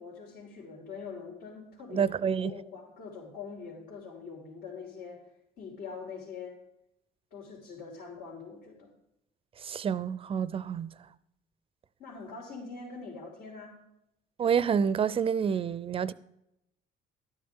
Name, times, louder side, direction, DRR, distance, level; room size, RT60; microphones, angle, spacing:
voice 1, 0.0-2.1 2.4-5.2 5.6-6.6 7.3-8.9 12.0-13.8, left 5 dB, 75° left, 3.0 m, -43 dB
voice 2, 1.9-2.5 9.6-10.9 14.4-16.1, right 7 dB, 35° right, 0.5 m, -28 dB
12.0 x 9.6 x 3.7 m
cardioid pair, 110°, 17 cm